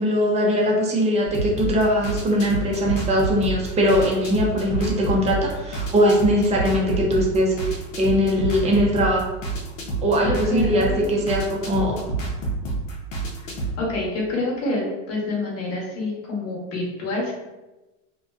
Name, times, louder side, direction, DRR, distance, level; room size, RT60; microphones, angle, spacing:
voice 1, 0.0-9.3 10.0-12.0, equal, 20° right, -2 dB, 0.5 m, -21 dB
sound 1, 1.2-13.8, right 3 dB, 90° left, 0.7 m, -29 dB
voice 2, 10.2-11.1 13.8-17.3, left 2 dB, 40° left, -3 dB, 0.9 m, -27 dB
2.4 x 2.2 x 2.2 m, 1.1 s
supercardioid pair, 115°, 38 cm